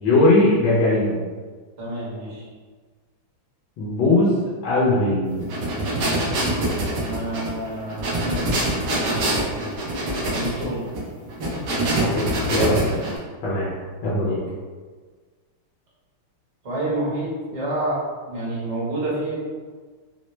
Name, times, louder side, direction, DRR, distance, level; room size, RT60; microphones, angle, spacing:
voice 1, 0.0-1.2 3.8-4.3 4.6-5.4 12.0-13.0 13.4-13.7 14.0-14.4, left 2 dB, 75° left, -6 dB, 1.4 m, -19 dB
voice 2, 1.8-2.4 7.0-8.5 8.9-9.7 10.3-10.8 14.2-14.4 16.6-18.0 18.3-19.4, right 1 dB, 25° right, -9 dB, 0.9 m, -29 dB
sound 1, 5.4-13.2, right 1 dB, 65° right, 1.3 m, -25 dB
4.3 x 2.0 x 3.1 m, 1.5 s
omnidirectional pair, 2.2 m